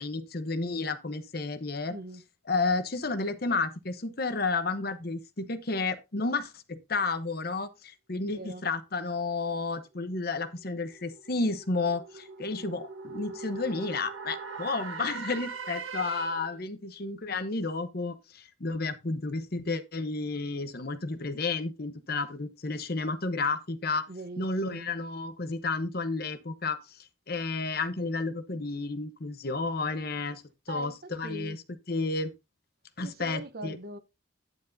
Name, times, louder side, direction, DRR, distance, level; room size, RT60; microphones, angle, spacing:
voice 1, 0.0-2.0 2.5-24.1 24.4-32.3 33.0-33.8, left 3 dB, 50° left, 0.9 m, -32 dB
voice 2, 1.9-2.2 8.3-8.6 24.1-24.9 30.7-31.6 33.0-34.0, right 1 dB, 50° right, 0.9 m, -41 dB
sound 1, 10.6-16.6, right 4 dB, 85° right, 1.5 m, -41 dB
9.9 x 9.3 x 2.7 m
head